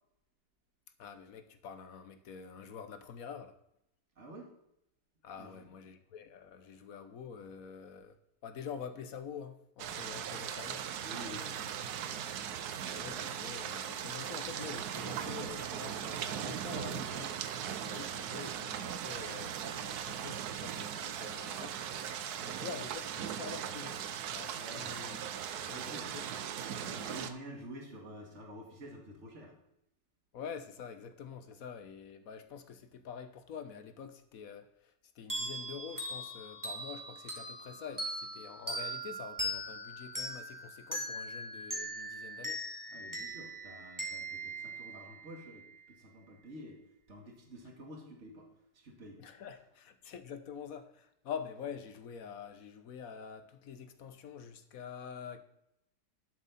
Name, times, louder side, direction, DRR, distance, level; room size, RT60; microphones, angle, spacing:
voice 1, 1.0-3.5 5.2-8.2 8.4-10.8 12.9-17.3 17.8-21.8 22.4-24.0 24.3-25.2 25.7-26.2 30.3-42.6 49.2-55.4, left 7 dB, 55° left, 1.2 m, -46 dB
voice 2, 4.2-4.5 5.4-5.7 11.0-11.8 24.5-25.0 25.6-26.1 26.5-29.6 42.9-46.8 47.1-49.2, equal, 40° right, 2.3 m, -49 dB
sound 1, 9.8-27.3, right 9 dB, 65° right, 1.2 m, -39 dB
sound 2, 35.3-45.6, equal, 10° right, 1.8 m, -40 dB
11.5 x 7.3 x 4.2 m
omnidirectional pair, 1.9 m